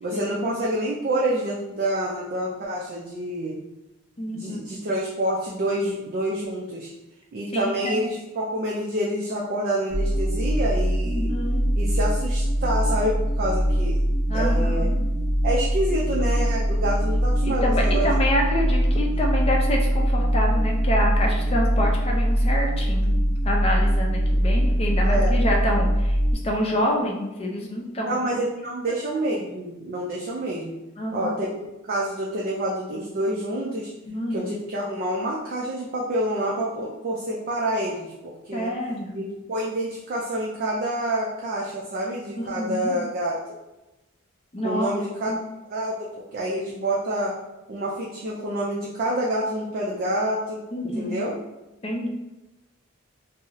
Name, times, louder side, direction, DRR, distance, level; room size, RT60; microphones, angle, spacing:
voice 1, 0.0-3.6 4.3-6.9 7.3-11.3 11.8-14.0 14.3-14.9 15.4-18.1 25.0-25.3 28.0-30.7 31.1-33.9 34.3-38.7 39.1-43.4 44.6-45.3 45.7-47.3 47.7-50.6 51.0-51.4, right 1 dB, 45° right, -4 dB, 0.4 m, -27 dB
voice 2, 4.2-4.6 7.5-8.0 11.0-11.6 14.3-15.0 17.4-23.1 23.4-26.2 26.4-28.3 31.0-31.3 34.1-34.5 38.5-39.3 42.4-43.0 44.5-44.9 45.3-45.4 50.7-51.3 51.8-52.1, equal, 30° left, 0 dB, 0.5 m, -27 dB
sound 1, 9.9-26.3, equal, 65° left, 0.7 m, -22 dB
2.6 x 2.0 x 3.8 m, 1.0 s
head